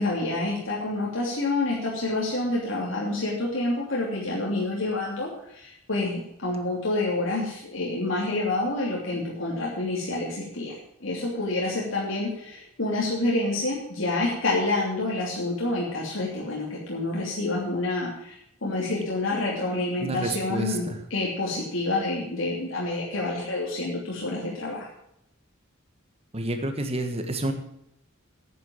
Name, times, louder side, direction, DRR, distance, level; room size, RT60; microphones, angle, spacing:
voice 1, 0.0-24.9, left 2 dB, 75° left, -4 dB, 3.0 m, -28 dB
voice 2, 20.0-21.0 26.3-27.5, right 2 dB, 30° right, 6 dB, 1.6 m, -29 dB
9.9 x 9.4 x 7.2 m, 0.78 s
head